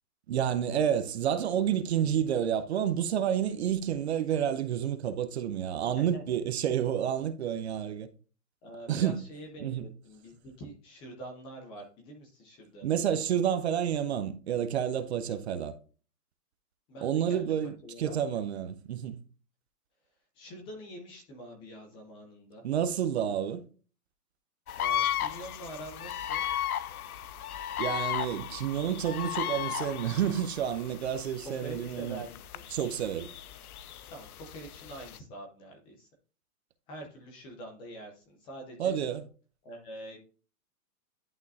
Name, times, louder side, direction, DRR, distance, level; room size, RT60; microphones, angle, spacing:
voice 1, 0.3-8.1 8.9-9.3 9.6-9.8 12.8-15.7 17.0-19.2 22.6-23.6 27.8-32.2 32.7-33.3 38.8-39.2, right 9 dB, 45° right, 0.8 m, -29 dB
voice 2, 5.9-6.3 8.6-12.9 16.9-17.5 17.8-18.4 20.3-22.6 24.7-26.4 31.6-32.6 34.1-36.1 36.9-39.0 39.6-40.2, right 1 dB, 10° left, 0.7 m, -45 dB
sound 1, 24.7-35.2, left 11 dB, 65° left, 0.6 m, -35 dB
11.0 x 3.7 x 2.7 m
hypercardioid pair, 150°, 47 cm